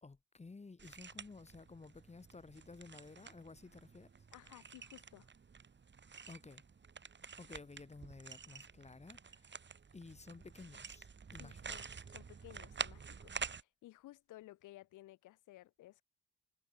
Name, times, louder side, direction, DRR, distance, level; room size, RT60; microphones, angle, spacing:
voice 1, 0.0-4.1 6.3-6.6 7.4-9.6 9.9-11.6, left 3 dB, 20° left, 2.0 m, -54 dB
sound 1, 0.8-13.6, right 5 dB, 35° right, 4.0 m, -49 dB
voice 2, 4.3-5.3 11.4-16.0, left 16 dB, 90° left, 2.2 m, -57 dB
cardioid pair, 90°, 30 cm